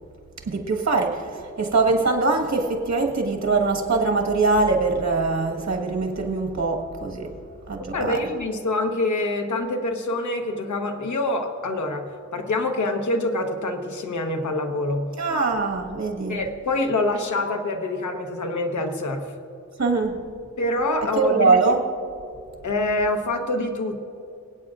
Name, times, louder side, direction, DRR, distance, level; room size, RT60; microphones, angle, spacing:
voice 1, 0.4-7.3 7.7-8.2 15.2-16.4 19.8-20.2 21.2-21.8, right 3 dB, 65° right, 2 dB, 1.5 m, -22 dB
voice 2, 7.9-15.1 16.3-19.3 20.6-21.5 22.6-24.0, left 2 dB, 80° left, 4 dB, 1.1 m, -25 dB
24.5 x 8.7 x 2.5 m, 2.5 s
wide cardioid pair, 105°, 29 cm